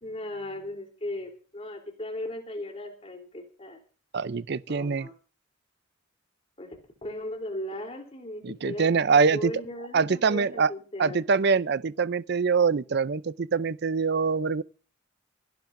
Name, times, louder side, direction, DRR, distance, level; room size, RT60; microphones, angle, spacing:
voice 1, 0.0-3.8 4.7-5.1 6.6-6.7 7.0-8.9 9.3-11.2, left 1 dB, 30° left, 3.5 m, -37 dB
voice 2, 4.1-5.1 8.4-9.5 9.9-10.7 11.0-14.6, right 5 dB, 55° right, 0.5 m, -24 dB
26.5 x 12.0 x 2.6 m
head